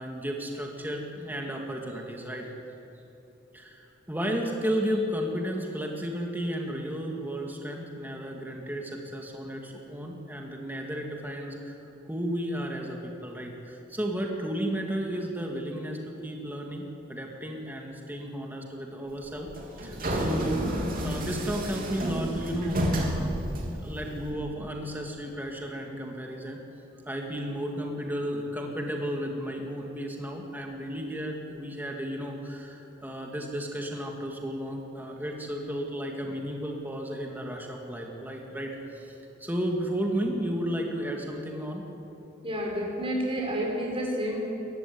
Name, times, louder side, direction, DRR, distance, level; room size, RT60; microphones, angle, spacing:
voice 1, 0.0-2.5 3.5-11.8 12.1-19.5 19.8-20.6 21.0-26.6 27.1-41.8, equal, 10° right, 0 dB, 2.1 m, -33 dB
sound 1, 19.3-24.3, equal, 45° right, 3.3 m, -30 dB
voice 2, 42.4-44.4, equal, 30° right, -1 dB, 5.6 m, -30 dB
23.5 x 15.0 x 9.6 m, 2.9 s
head